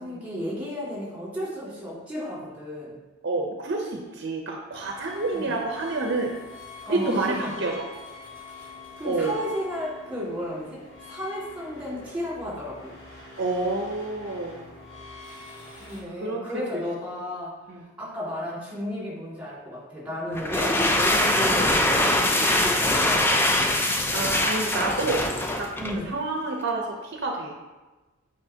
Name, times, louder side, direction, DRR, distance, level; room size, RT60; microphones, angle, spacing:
voice 1, 0.0-3.0 5.3-5.5 6.9-7.5 9.0-10.8 11.1-12.9 15.8-17.6 18.0-23.7 25.8-26.1, equal, 5° right, -6 dB, 2.0 m, -33 dB
voice 2, 3.2-6.3 6.9-7.9 9.0-9.4 13.4-14.7 16.2-16.4 16.7-16.8 17.7-17.9 24.1-25.2 25.5-25.7 26.1-27.5, right 3 dB, 55° right, 1 dB, 0.6 m, -28 dB
sound 1, 4.7-16.0, left 3 dB, 60° left, 2.0 m, -44 dB
sound 2, 20.3-26.1, left 1 dB, 10° left, 0.4 m, -23 dB
8.0 x 4.9 x 2.8 m, 1.2 s
head